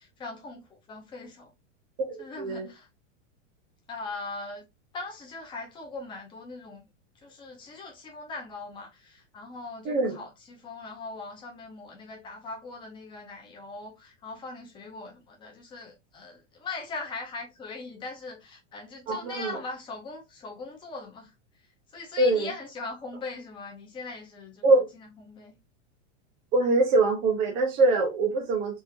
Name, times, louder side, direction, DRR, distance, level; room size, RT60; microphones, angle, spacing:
voice 1, 0.0-1.5 2.2-2.9 3.9-4.6 4.9-6.9 7.1-21.3 21.9-24.7 24.9-25.5, left 3 dB, 15° left, 0.8 m, -40 dB
voice 2, 2.1-2.7 9.8-10.2 19.1-19.5 22.2-22.5 24.6-24.9 26.5-28.8, right 2 dB, 20° right, 0.6 m, -23 dB
3.6 x 2.7 x 2.8 m
supercardioid pair, 170°, 37 cm